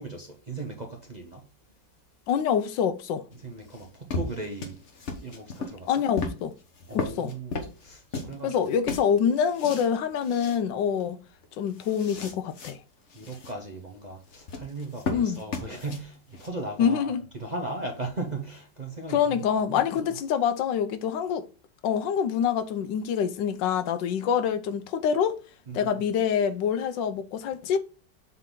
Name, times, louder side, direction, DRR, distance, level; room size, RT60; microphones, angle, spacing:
voice 1, 0.0-1.5 3.4-4.8 5.2-5.9 6.9-8.6 13.1-19.4 19.7-19.8 25.7-25.9, right 2 dB, 40° right, 0.6 m, -37 dB
voice 2, 2.3-3.3 5.9-6.6 6.9-7.3 8.4-11.2 11.6-12.8 15.1-15.4 16.8-17.2 19.1-21.5 21.8-25.4 25.7-27.8, left 7 dB, 80° left, 1.4 m, -26 dB
sound 1, 3.3-8.4 8.6-9.9 10.2-10.6 11.0-11.1 11.4-12.7 13.1-13.5 14.3-16.5, left 3 dB, 45° left, 1.2 m, -35 dB
7.5 x 4.0 x 3.7 m
omnidirectional pair, 2.0 m